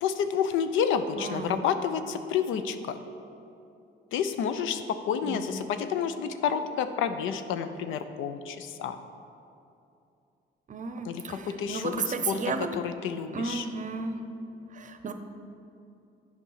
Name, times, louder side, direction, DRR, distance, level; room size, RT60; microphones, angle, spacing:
voice 1, 0.0-3.0 4.1-9.0 11.0-12.4 12.8-13.7, left 7 dB, 85° left, 9 dB, 0.5 m, -29 dB
voice 2, 1.2-1.6 5.2-5.6 10.7-12.7 13.3-14.2 14.7-15.1, right 4 dB, 40° right, 7 dB, 0.6 m, -33 dB
8.3 x 4.5 x 5.6 m, 2.6 s
cardioid pair, 90°, 20 cm